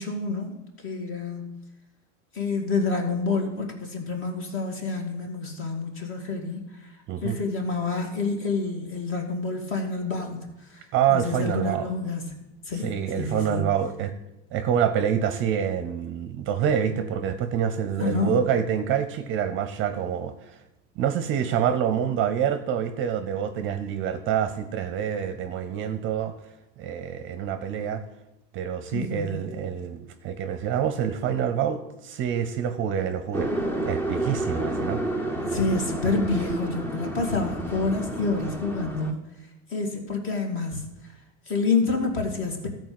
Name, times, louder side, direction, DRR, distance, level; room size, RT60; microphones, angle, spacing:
voice 1, 0.0-1.6 2.3-7.0 7.2-10.8 11.1-12.4 12.6-13.7 18.0-18.4 28.9-29.5 35.5-39.3 39.7-41.1 41.5-42.7, left 3 dB, 35° left, 3 dB, 2.1 m, -28 dB
voice 2, 10.9-11.9 12.8-14.1 14.5-20.6 21.0-26.3 26.8-28.0 28.5-33.5 33.8-35.0, right 8 dB, 35° right, 10 dB, 0.7 m, -26 dB
sound 1, 33.3-39.1, right 1 dB, 5° left, 0.7 m, -30 dB
13.5 x 4.5 x 7.8 m, 0.93 s
supercardioid pair, 145°, 36 cm